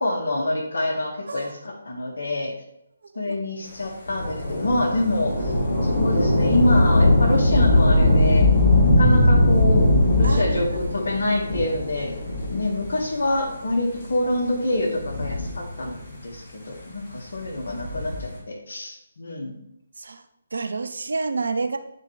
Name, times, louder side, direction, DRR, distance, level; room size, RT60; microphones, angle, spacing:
voice 1, 0.0-2.5 3.2-5.5 5.8-8.5 8.9-9.9 10.1-12.2 12.5-15.9 16.2-19.6, left 1 dB, 65° left, 0 dB, 1.9 m, -26 dB
Thunder / Rain, 4.1-13.0 13.8-13.9 14.8-16.1 17.6-18.4, left 1 dB, 40° left, 2.7 m, -20 dB
voice 2, 10.2-10.8 20.0-20.2 20.5-21.8, right 3 dB, 60° right, 8 dB, 0.6 m, -29 dB
9.5 x 4.5 x 3.4 m, 0.80 s
figure-of-eight pair, 145°, 0 cm